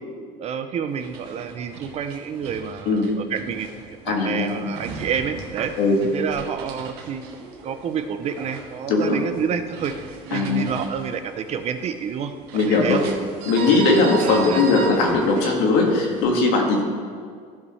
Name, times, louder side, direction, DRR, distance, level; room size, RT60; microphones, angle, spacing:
voice 1, 0.4-5.7 6.1-7.2 7.6-12.3 12.7-13.0 14.2-14.6, right 7 dB, 40° right, 9 dB, 0.5 m, -29 dB
sound 1, 0.9-16.2, right 4 dB, 70° right, 1.5 m, -37 dB
voice 2, 4.1-4.5 5.8-6.0 8.9-9.2 10.3-10.7 12.5-13.0 13.4-16.8, left 3 dB, 70° left, 0 dB, 1.9 m, -19 dB
15.0 x 5.3 x 3.2 m, 2.1 s
cardioid pair, 130°, 17 cm